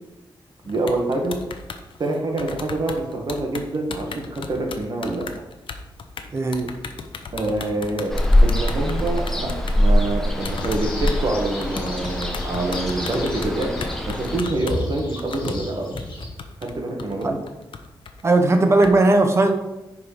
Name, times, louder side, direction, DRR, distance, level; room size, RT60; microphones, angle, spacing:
sound 1, 0.6-9.8 10.1-11.2 11.5-18.9, left 5 dB, 85° left, 0.8 m, -36 dB
voice 1, 0.7-1.4 2.0-5.3 7.3-8.2 8.4-13.8 14.1-16.0 16.6-17.4, right 2 dB, 55° right, 1 dB, 1.8 m, -26 dB
voice 2, 6.3-6.7 17.2-17.3 18.2-19.5, right 2 dB, 30° right, 5 dB, 1.0 m, -17 dB
Ocean, 8.1-14.4, left 1 dB, 5° left, 1.1 m, -22 dB
sound 2, 10.4-16.3, left 1 dB, 65° left, 2.3 m, -35 dB
10.5 x 4.7 x 5.2 m, 0.99 s
wide cardioid pair, 165°, 9 cm